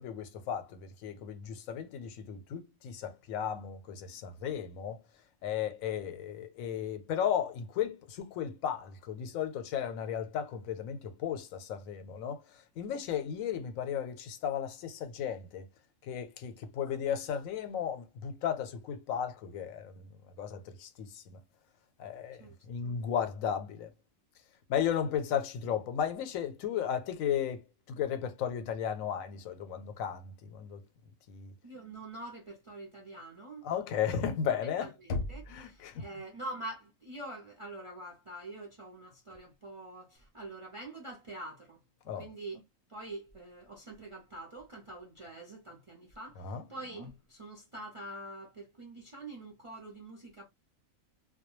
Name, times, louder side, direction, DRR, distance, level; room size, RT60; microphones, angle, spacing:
voice 1, 0.0-5.0 5.4-12.4 12.8-15.7 16.0-20.1 20.4-21.4 22.0-23.9 24.7-30.8 31.3-31.5 33.6-34.9 35.5-36.2 42.0-42.3 46.4-46.6, left 8 dB, 90° left, 1.0 m, -35 dB
voice 2, 31.6-33.6 34.8-41.8 42.2-42.6 42.9-46.4 46.7-50.5, right 2 dB, 45° right, 0.4 m, -45 dB
Knock, 35.1-36.0, left 3 dB, 60° left, 0.7 m, -36 dB
2.2 x 2.2 x 2.9 m
omnidirectional pair, 1.4 m